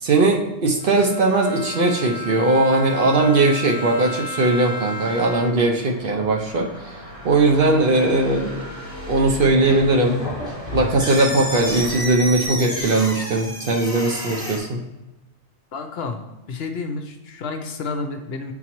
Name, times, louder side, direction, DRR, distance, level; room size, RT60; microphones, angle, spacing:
voice 1, 0.0-7.0 7.2-8.6 9.1-10.2 10.7-14.8, right 2 dB, 55° right, 1 dB, 0.7 m, -19 dB
Bowed string instrument, 0.8-5.8, left 3 dB, 40° left, 0.5 m, -33 dB
sound 1, 4.3-12.0, left 1 dB, 75° right, 2.4 m, -38 dB
sound 2, 9.5-14.6, equal, 5° right, 1.4 m, -30 dB
voice 2, 15.7-16.2 16.5-18.5, left 4 dB, 65° left, 5 dB, 0.8 m, -30 dB
8.3 x 3.8 x 3.0 m, 1.0 s
omnidirectional pair, 1.2 m